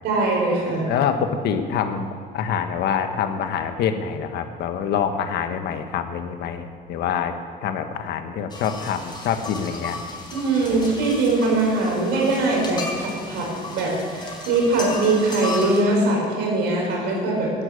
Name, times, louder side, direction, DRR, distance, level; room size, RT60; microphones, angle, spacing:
voice 1, 0.0-0.9 10.3-17.5, right 2 dB, 90° right, -1 dB, 5.1 m, -22 dB
voice 2, 0.9-2.1 2.3-7.3 7.6-10.0, left 7 dB, 75° left, 7 dB, 1.3 m, -25 dB
sound 1, 8.5-15.8, left 2 dB, 25° left, 4.5 m, -34 dB
13.0 x 10.5 x 8.3 m, 2.2 s
cardioid pair, 110°, 17 cm